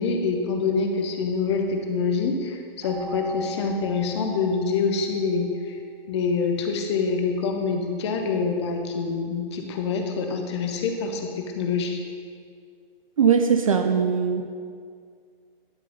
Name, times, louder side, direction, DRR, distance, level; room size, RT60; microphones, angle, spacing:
voice 1, 0.0-5.8 6.1-12.0, left 4 dB, 30° left, 4 dB, 0.7 m, -26 dB
Keyboard (musical), 2.8-5.4, equal, 15° right, 1.2 m, -39 dB
voice 2, 13.2-14.4, right 6 dB, 40° right, 6 dB, 0.4 m, -20 dB
10.5 x 3.9 x 5.2 m, 2.1 s
hypercardioid pair, 155°, 29 cm